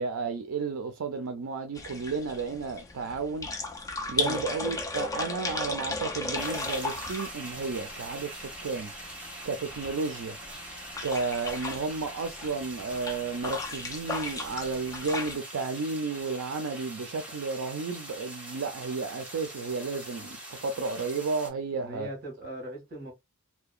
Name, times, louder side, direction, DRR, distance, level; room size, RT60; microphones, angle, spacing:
voice 1, 0.0-3.5 4.1-8.9 9.4-10.4 11.0-22.1, right 4 dB, 75° right, 0.4 m, -32 dB
sound 1, 1.7-15.4, left 3 dB, 15° left, 0.4 m, -36 dB
sound 2, 6.4-21.5, right 1 dB, 5° right, 0.8 m, -43 dB
voice 2, 21.8-23.1, right 1 dB, 45° right, 1.4 m, -40 dB
2.8 x 2.1 x 2.4 m
head